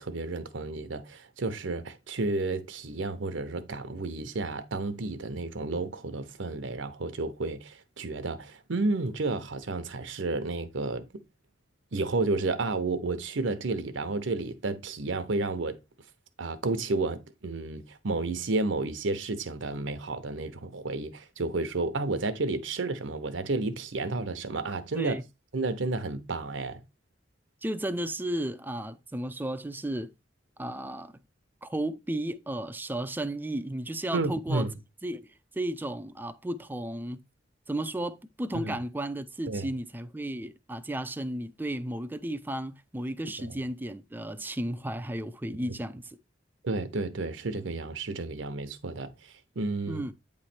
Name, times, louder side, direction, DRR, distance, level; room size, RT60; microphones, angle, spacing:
voice 1, 0.0-11.1 11.9-15.8 16.4-25.2 25.5-26.8 34.1-34.7 38.5-38.7 39.5-39.7 43.4-43.6 46.6-50.0, right 3 dB, 75° right, 0.8 m, -31 dB
voice 2, 27.6-30.1 30.6-31.1 31.6-34.7 35.0-37.2 37.7-46.2 49.8-50.1, right 1 dB, 10° right, 0.4 m, -34 dB
8.7 x 3.2 x 4.3 m
head